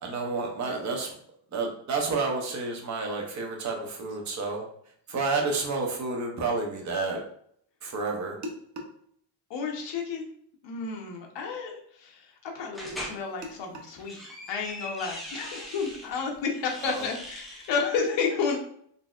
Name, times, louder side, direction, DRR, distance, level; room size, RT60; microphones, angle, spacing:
voice 1, 0.0-1.2 1.5-4.6 5.1-7.2 7.8-8.5 16.8-17.1, right 3 dB, 40° right, 1 dB, 0.7 m, -30 dB
voice 2, 9.5-10.3 10.6-14.2 14.5-18.6, left 5 dB, 70° left, 1 dB, 0.9 m, -31 dB
sound 1, 12.7-13.2 13.8-16.1 16.5-17.8, equal, ahead, 0.4 m, -41 dB
3.9 x 2.7 x 2.4 m, 0.65 s
cardioid pair, 165°, 45 cm